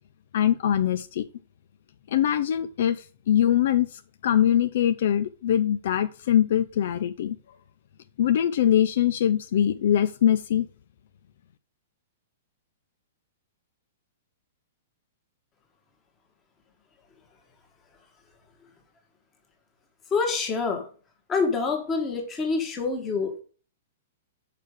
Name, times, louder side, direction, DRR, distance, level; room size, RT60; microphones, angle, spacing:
voice 1, 0.3-1.3 2.1-7.4 8.2-10.7, left 10 dB, 55° left, 11 dB, 0.4 m, -23 dB
voice 2, 20.1-20.9 21.3-23.4, left 4 dB, 15° left, 3 dB, 1.6 m, -26 dB
6.7 x 4.9 x 6.5 m, 0.40 s
hypercardioid pair, 170°, 0 cm